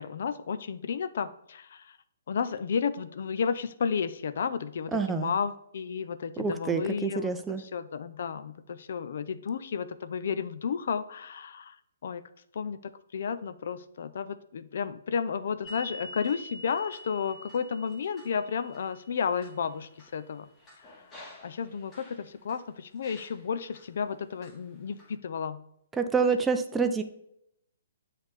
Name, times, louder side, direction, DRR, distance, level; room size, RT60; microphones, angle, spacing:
voice 1, 0.0-2.0 2.3-7.3 7.6-11.8 12.0-12.2 12.5-20.5 20.8-20.9 21.4-25.6, left 6 dB, 60° left, 13 dB, 0.4 m, -32 dB
voice 2, 4.9-5.3 6.4-7.6 26.0-27.0, right 5 dB, 10° right, 7 dB, 0.4 m, -27 dB
sound 1, 15.6-22.6 23.0-23.8 24.4-25.1, equal, 20° left, 1.5 m, -48 dB
7.8 x 3.3 x 4.0 m, 0.77 s
figure-of-eight pair, 130°, 0 cm